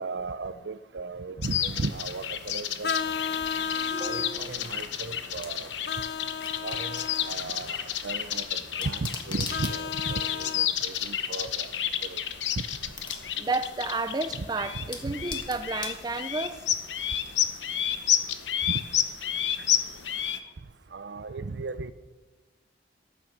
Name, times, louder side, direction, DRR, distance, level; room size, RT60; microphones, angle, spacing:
voice 1, 0.0-2.9 4.0-5.7 6.6-7.8 8.0-8.5 8.8-11.7 12.0-12.2 12.6-12.7 14.7-15.1 20.9-21.9, right 3 dB, 70° right, 13 dB, 0.6 m, -35 dB
sound 1, 1.4-20.4, left 10 dB, 80° left, 0.9 m, -31 dB
Vehicle horn car horn honking, 2.8-4.4 5.9-7.4 9.5-10.7, left 6 dB, 60° left, 0.5 m, -33 dB
voice 2, 3.9-4.7 13.4-16.6, right 3 dB, 20° right, 10 dB, 0.5 m, -32 dB
sound 2, 5.2-17.2, left 4 dB, 25° left, 1.5 m, -46 dB
14.0 x 8.9 x 6.6 m, 1.2 s
head